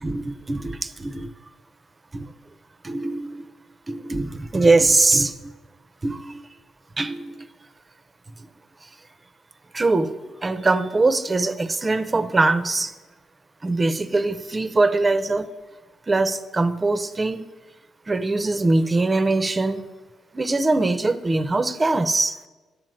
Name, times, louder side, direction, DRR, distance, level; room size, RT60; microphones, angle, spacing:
voice 1, 0.0-1.3 2.1-2.3 2.8-3.4 3.9-5.5 6.0-6.5 7.0-7.4 9.7-12.9 13.6-15.5 16.1-17.4 18.1-19.9 20.3-22.4, right 3 dB, 25° right, 0.7 m, -22 dB
10.0 x 7.5 x 7.8 m
cardioid pair, 90°, 0 cm